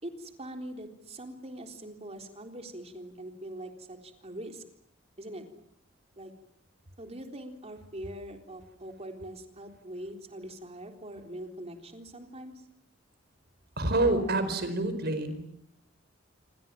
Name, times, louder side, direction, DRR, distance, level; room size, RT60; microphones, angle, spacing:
voice 1, 0.0-4.6 5.2-5.5 6.2-6.3 7.0-12.5, right 1 dB, 35° right, 5 dB, 3.8 m, -42 dB
voice 2, 13.8-15.4, right 2 dB, 55° right, 10 dB, 4.7 m, -27 dB
28.5 x 25.0 x 7.6 m, 0.73 s
head